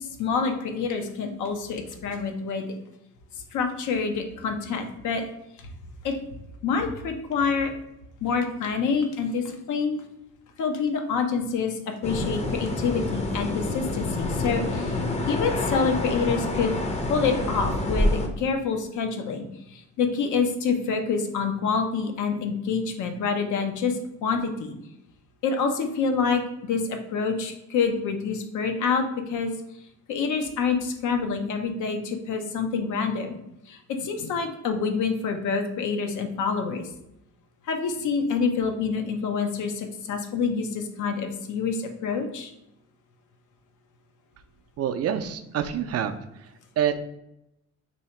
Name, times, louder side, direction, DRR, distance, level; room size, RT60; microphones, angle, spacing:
voice 1, 0.2-2.7 3.5-5.2 5.6-5.7 6.0-6.2 6.6-7.7 8.2-10.0 10.6-15.0 15.3-16.8 17.1-24.8 25.4-29.5 30.1-33.4 33.7-36.9 37.7-42.5, left 5 dB, 75° left, 5 dB, 0.7 m, -27 dB
sound 1, 12.0-18.3, left 2 dB, 20° left, 0.6 m, -27 dB
voice 2, 44.8-46.1 46.8-47.0, right 9 dB, 55° right, 9 dB, 0.4 m, -26 dB
2.8 x 2.8 x 4.4 m, 0.84 s
cardioid pair, 90°, 30 cm